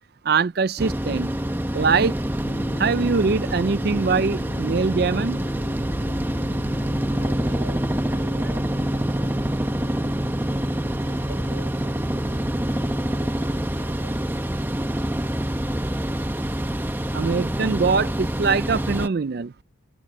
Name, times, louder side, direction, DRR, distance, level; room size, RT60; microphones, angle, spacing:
voice 1, 0.2-1.3 1.7-2.2 2.8-5.4 17.1-19.5, right 4 dB, 50° right, 0.4 m, -22 dB
sound 1, 0.8-19.1, right 1 dB, 10° right, 0.9 m, -26 dB
sound 2, 2.4-12.8, equal, 50° left, 4.1 m, -39 dB
voice 2, 7.1-9.6 10.5-14.4, right 3 dB, 75° right, 5.7 m, -47 dB
head